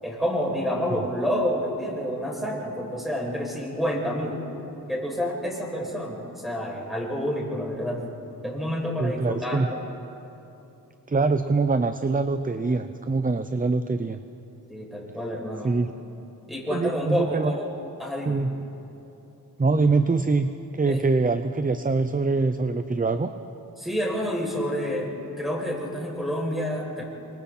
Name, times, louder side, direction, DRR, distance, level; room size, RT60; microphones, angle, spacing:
voice 1, 0.0-4.4 4.9-8.0 8.4-9.7 14.7-15.7 16.5-17.7 18.0-18.4 20.9-21.0 23.8-25.1 25.4-27.0, equal, ahead, -3 dB, 6.7 m, -28 dB
voice 2, 9.0-9.7 11.1-14.2 15.6-15.9 16.7-17.5 18.3-18.7 19.6-23.3, right 3 dB, 20° right, 9 dB, 0.7 m, -24 dB
28.0 x 24.5 x 4.3 m, 3.0 s
cardioid pair, 75°, 38 cm